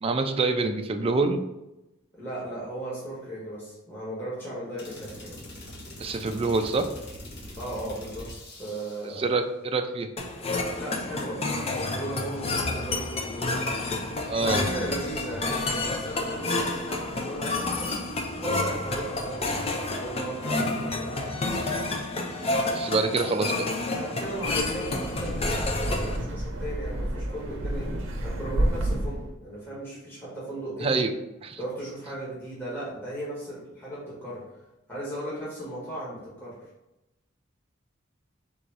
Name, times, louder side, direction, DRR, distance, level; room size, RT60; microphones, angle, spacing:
voice 1, 0.0-1.4 6.0-6.8 9.0-10.1 14.3-14.7 22.7-23.7 30.8-31.1 31.4-31.6, right 3 dB, 30° right, 6 dB, 0.4 m, -26 dB
voice 2, 2.2-5.4 7.6-8.3 8.6-9.3 10.7-13.7 14.4-18.1 18.4-19.6 19.9-21.9 23.9-30.9 31.6-34.6 34.9-36.6, right 1 dB, 10° left, -9 dB, 1.3 m, -37 dB
sound 1, 4.8-9.2, left 1 dB, 55° left, 1.1 m, -43 dB
sound 2, 10.2-26.2, left 2 dB, 30° left, 0.5 m, -29 dB
Wind, 24.3-29.3, right 1 dB, 75° right, 0.7 m, -30 dB
3.8 x 2.6 x 4.6 m, 0.95 s
head